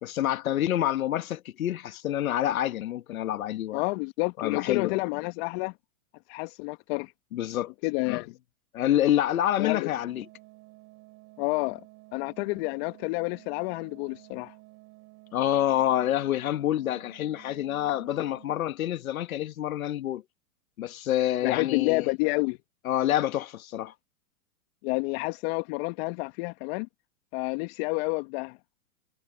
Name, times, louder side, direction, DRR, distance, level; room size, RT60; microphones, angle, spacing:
voice 1, 0.0-3.8 4.4-5.0 7.3-7.7 8.1-8.2 8.7-10.3 15.3-20.2 20.8-22.1 22.8-23.9, left 12 dB, 70° left, 1.7 m, -27 dB
voice 2, 3.7-5.7 6.3-7.1 7.8-8.3 9.6-9.9 11.4-11.8 12.1-14.5 21.4-22.6 24.8-26.9 27.3-28.6, left 28 dB, 45° left, 1.8 m, -29 dB
sound 1, 9.8-18.6, right 23 dB, 40° right, 3.8 m, -53 dB
hypercardioid pair, 120°, 43 cm